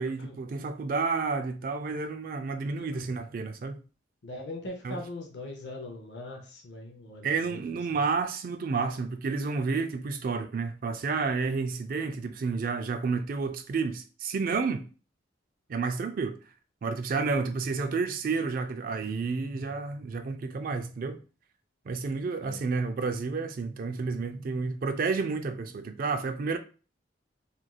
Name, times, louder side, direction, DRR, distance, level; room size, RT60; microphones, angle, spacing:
voice 1, 0.0-3.8 4.8-5.0 7.2-14.9 15.7-16.4 16.8-21.2 21.9-26.6, right 4 dB, 50° right, 0.3 m, -30 dB
voice 2, 2.8-3.1 4.2-8.0 22.4-22.6, left 2 dB, 65° left, 0.5 m, -41 dB
3.0 x 2.5 x 2.2 m
head